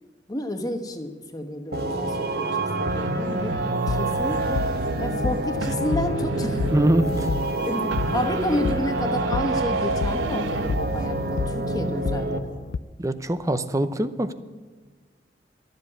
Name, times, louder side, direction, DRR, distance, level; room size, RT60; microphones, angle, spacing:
voice 1, 0.3-4.6 5.0-6.6 7.6-12.6, left 1 dB, 20° left, 5 dB, 1.1 m, -31 dB
sound 1, 1.7-12.4, right 2 dB, 60° right, 1.0 m, -27 dB
sound 2, 2.9-12.8, left 5 dB, 75° left, 0.4 m, -32 dB
sound 3, 2.9-5.3 5.6-7.6 7.9-11.3, right 6 dB, 85° right, 0.3 m, -33 dB
voice 2, 6.7-7.3 13.0-14.3, right 1 dB, 20° right, 12 dB, 0.6 m, -23 dB
12.5 x 7.9 x 9.8 m, 1.5 s
head